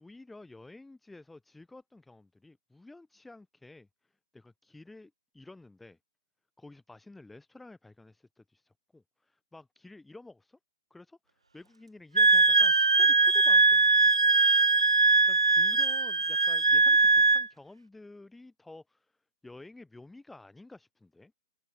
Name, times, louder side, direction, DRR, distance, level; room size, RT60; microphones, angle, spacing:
voice 1, 0.0-6.0 6.6-10.6 10.9-14.3 15.3-19.2 19.4-21.3, left 2 dB, 5° left, 5.8 m, -52 dB
Wind instrument woodwind instrument, 12.2-17.5, right 3 dB, 85° right, 1.0 m, -21 dB
figure-of-eight pair, 145°, 3 cm